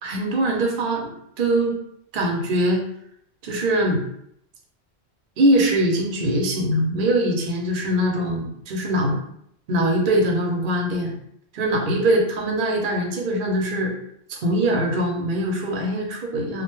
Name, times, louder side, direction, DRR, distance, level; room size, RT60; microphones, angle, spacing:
voice 1, 0.0-1.8 2.1-2.8 3.4-4.0 5.4-9.1 9.7-11.2 11.5-13.9 14.3-16.6, right 1 dB, 55° right, 0 dB, 0.7 m, -22 dB
2.5 x 2.2 x 3.0 m, 0.70 s
omnidirectional pair, 1.2 m